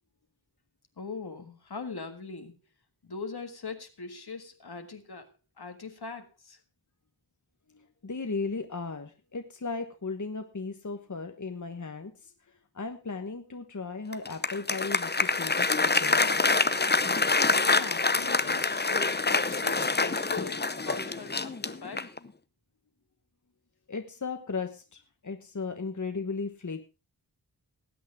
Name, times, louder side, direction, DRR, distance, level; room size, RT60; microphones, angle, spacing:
voice 1, 1.0-2.6 3.0-5.3 5.6-6.6 17.7-22.1, left 4 dB, 70° left, 6 dB, 1.8 m, -41 dB
voice 2, 8.0-12.1 12.7-16.2 23.9-26.8, left 4 dB, 45° left, 6 dB, 1.3 m, -36 dB
Applause, 14.1-22.3, left 3 dB, 25° left, 0.8 m, -26 dB
19.5 x 8.5 x 3.5 m, 0.29 s
wide cardioid pair, 55°, 40 cm